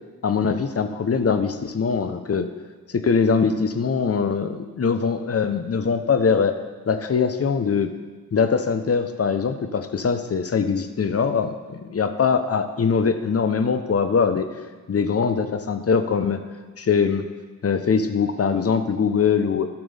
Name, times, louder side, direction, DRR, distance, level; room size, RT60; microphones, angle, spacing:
voice 1, 0.2-2.5 2.9-6.5 6.9-7.9 8.3-14.5 14.9-16.4 16.8-17.3 17.6-19.7, left 5 dB, 35° left, 9 dB, 0.9 m, -22 dB
12.5 x 6.0 x 3.5 m, 1.4 s
hypercardioid pair, 45°, 41 cm